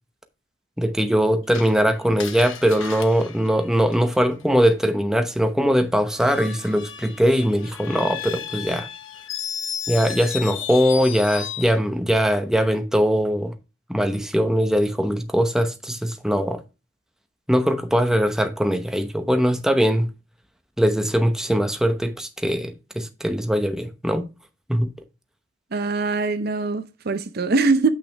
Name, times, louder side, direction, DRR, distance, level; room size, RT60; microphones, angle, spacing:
voice 1, 0.8-8.9 9.9-13.5 13.9-16.6 17.5-20.1 20.8-24.3 24.7-24.9, equal, 5° right, 0.9 m, -21 dB
Screech, 1.5-4.4 6.1-11.8, left 8 dB, 75° left, 0.9 m, -34 dB
voice 2, 25.7-27.9, right 3 dB, 50° right, 0.6 m, -22 dB
8.5 x 6.0 x 3.4 m
head